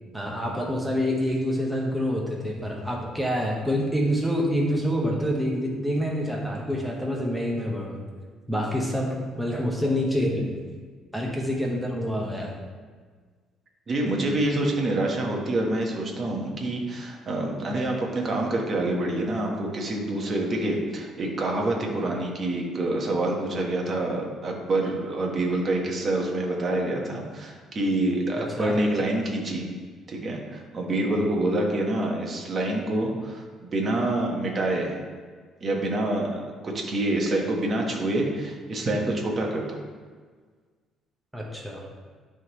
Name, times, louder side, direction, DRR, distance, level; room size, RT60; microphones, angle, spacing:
voice 1, 0.1-8.0 8.5-10.6 11.1-12.6 28.4-28.8 41.3-41.8, equal, 5° right, -2 dB, 1.1 m, -27 dB
voice 2, 13.9-29.7 30.1-35.0 35.6-39.8, right 1 dB, 40° right, 0 dB, 1.4 m, -27 dB
11.0 x 3.7 x 3.1 m, 1.5 s
cardioid pair, 105°, 0 cm